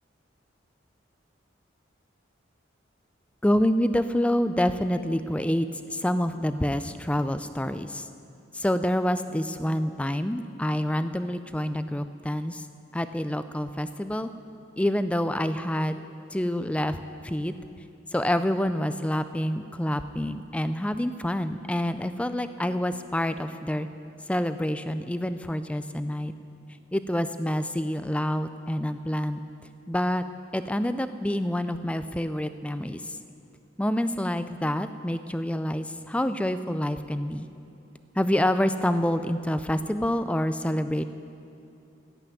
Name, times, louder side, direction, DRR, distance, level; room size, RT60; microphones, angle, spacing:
voice 1, 3.4-8.1 8.5-12.7 12.9-14.3 14.8-16.0 16.3-17.0 17.2-17.5 18.1-23.9 24.3-26.3 26.9-29.4 29.9-30.2 30.5-33.2 33.8-37.5 38.2-41.0, left 1 dB, 5° left, 11 dB, 0.4 m, -27 dB
14.5 x 8.4 x 9.3 m, 2.7 s
head